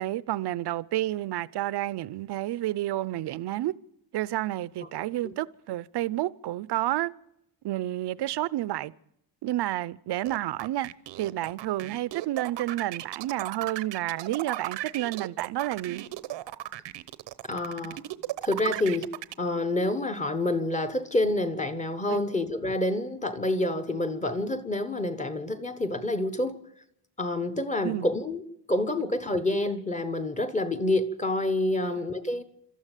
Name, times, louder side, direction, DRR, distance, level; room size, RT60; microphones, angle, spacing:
voice 1, 0.0-3.7 4.1-7.1 7.6-8.9 9.4-10.9 11.2-16.0 22.1-22.2 27.8-28.1 31.8-32.0, right 15 dB, 65° right, 0.8 m, -30 dB
sound 1, 10.2-19.3, right 14 dB, 85° right, 1.1 m, -36 dB
voice 2, 17.5-18.0 18.4-19.1 19.4-26.6 27.2-28.4 28.7-32.4, left 1 dB, 15° left, 1.1 m, -28 dB
28.0 x 13.5 x 9.1 m
cardioid pair, 180°, 43 cm